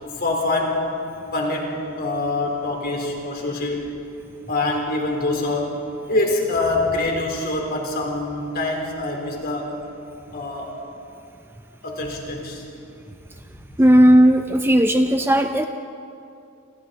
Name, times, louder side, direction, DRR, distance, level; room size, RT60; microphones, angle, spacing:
voice 1, 0.0-0.8 1.3-3.9 4.5-5.8 6.1-9.8 10.3-10.8 11.8-12.6, left 2 dB, 45° left, 0 dB, 4.1 m, -25 dB
voice 2, 13.8-15.7, equal, 10° right, 6 dB, 0.6 m, -15 dB
29.5 x 26.0 x 4.2 m, 2.6 s
head